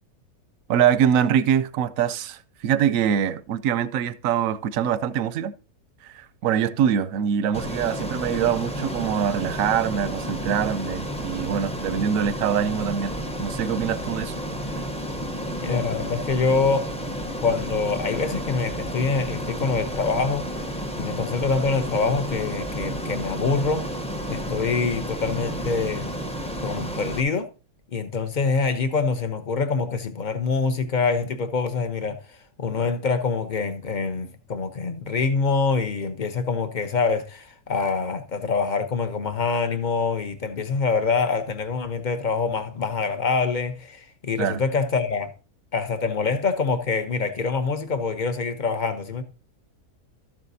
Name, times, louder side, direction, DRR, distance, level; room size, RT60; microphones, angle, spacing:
voice 1, 0.7-5.5 6.0-13.1 13.4-14.3 44.4-44.6, right 8 dB, 70° right, 0.9 m, -24 dB
Ocean, 7.5-27.2, equal, 5° left, 0.5 m, -31 dB
voice 2, 15.6-16.9 17.4-20.5 20.9-23.9 24.3-26.1 26.6-27.5 27.9-32.2 32.6-45.3 45.7-49.2, left 4 dB, 40° left, 0.7 m, -25 dB
13.0 x 7.4 x 2.7 m
omnidirectional pair, 1.6 m